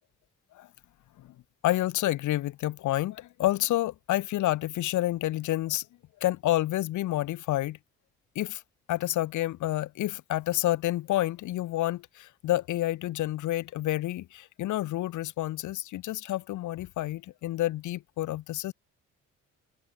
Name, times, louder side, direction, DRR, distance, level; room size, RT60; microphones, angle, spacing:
voice 1, 1.6-5.8 6.2-7.8 8.3-8.6 8.9-18.7, left 15 dB, 75° left, 1.0 m, -29 dB
cardioid pair, 90°, 30 cm